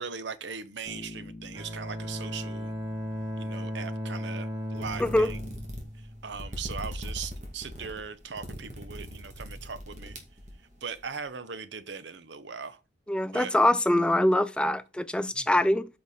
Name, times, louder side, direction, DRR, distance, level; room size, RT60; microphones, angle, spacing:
voice 1, 0.0-2.7 3.4-5.4 6.2-10.2 10.8-12.8 13.3-13.5 15.3-15.5, right 5 dB, 70° right, 0.8 m, -39 dB
Bass guitar, 0.9-4.6, left 1 dB, 25° left, 1.5 m, -48 dB
Bowed string instrument, 1.5-6.6, equal, 25° right, 4.0 m, -36 dB
sound 1, 4.8-11.0, equal, 40° right, 2.2 m, -40 dB
voice 2, 13.1-15.8, left 1 dB, 5° left, 0.3 m, -24 dB
8.5 x 5.8 x 4.2 m
head